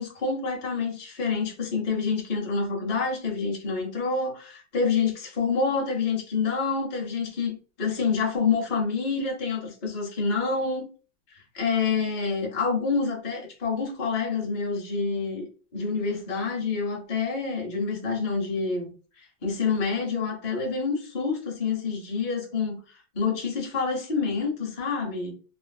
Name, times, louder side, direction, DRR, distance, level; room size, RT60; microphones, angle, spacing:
voice 1, 0.0-10.9 11.3-18.9 19.2-22.8 23.1-25.3, left 4 dB, 55° left, 0.5 m, -27 dB
3.0 x 2.6 x 2.2 m
omnidirectional pair, 2.1 m